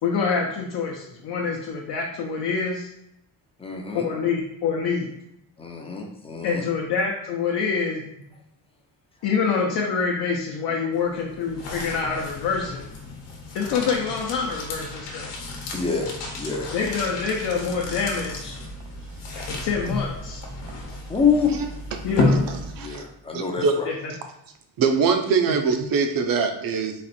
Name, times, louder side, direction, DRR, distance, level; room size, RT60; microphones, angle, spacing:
voice 1, 0.0-2.9 4.0-5.1 6.4-8.0 9.2-12.8 13.5-15.3 16.7-18.5 19.5-20.4 22.0-22.4 23.8-24.1 25.5-25.6, left 5 dB, 60° left, -1 dB, 0.7 m, -26 dB
voice 2, 3.6-4.1 5.6-6.6 15.7-16.8 21.1-21.6 22.8-23.9, left 5 dB, 15° left, 1 dB, 0.4 m, -26 dB
sound 1, 10.9-23.1, left 2 dB, 80° left, 1.0 m, -31 dB
voice 3, 22.5-23.0 23.6-23.7 24.8-26.9, right 5 dB, 50° right, 6 dB, 0.6 m, -22 dB
4.2 x 2.5 x 4.1 m, 0.81 s
cardioid pair, 170°, 43 cm